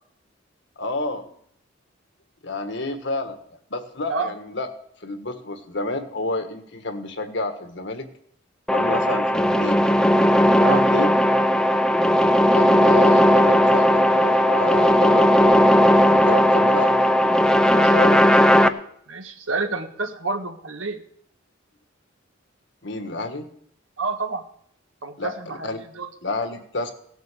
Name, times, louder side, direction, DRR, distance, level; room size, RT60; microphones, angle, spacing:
voice 1, 0.8-1.3 2.4-3.4 3.7-4.7 5.0-8.1 8.7-9.8 10.4-11.1 12.5-16.9 17.7-18.4 22.8-23.5 25.2-25.8 26.2-26.9, left 2 dB, 60° left, 7 dB, 1.6 m, -29 dB
sound 1, 8.7-18.7, equal, 5° left, 0.6 m, -17 dB
voice 2, 19.1-21.0 24.0-24.4 25.0-25.7 25.9-26.1, right 4 dB, 85° right, 6 dB, 1.6 m, -28 dB
17.0 x 8.1 x 6.8 m, 0.66 s
head